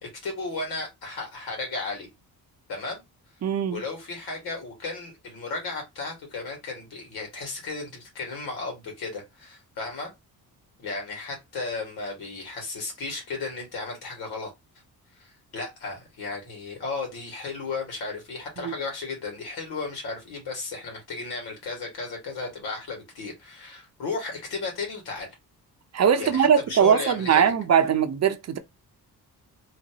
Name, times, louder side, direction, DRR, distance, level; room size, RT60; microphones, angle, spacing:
voice 1, 0.0-2.1 2.7-3.0 3.7-10.1 10.8-14.5 15.2-25.3 26.2-27.5, left 3 dB, 85° left, 2.0 m, -34 dB
voice 2, 3.4-3.8 18.6-18.7 25.9-28.6, right 8 dB, 45° right, 0.6 m, -21 dB
3.2 x 2.7 x 2.9 m
cardioid pair, 110°, 37 cm